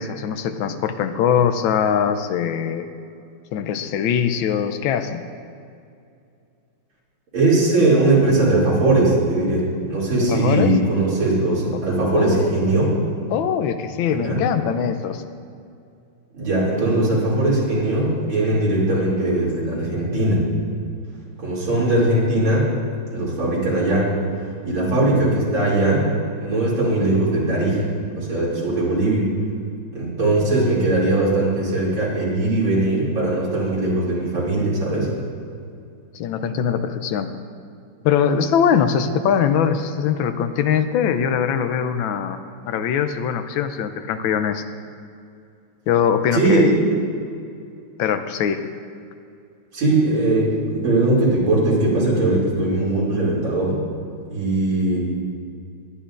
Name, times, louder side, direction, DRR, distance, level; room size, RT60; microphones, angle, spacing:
voice 1, 0.0-2.9 3.5-5.2 10.3-10.7 12.1-12.5 13.3-15.2 36.1-37.3 38.0-44.6 45.9-46.7 48.0-48.6, left 8 dB, 85° left, 9 dB, 1.4 m, -22 dB
voice 2, 7.3-12.9 14.0-14.4 16.3-20.4 21.4-22.7 23.1-24.1 24.6-26.1 26.4-27.8 28.2-29.3 29.9-35.1 46.3-47.0 49.7-53.8 54.3-55.0, right 2 dB, 85° right, -8 dB, 3.6 m, -20 dB
19.5 x 10.0 x 2.5 m, 2.5 s
omnidirectional pair, 2.1 m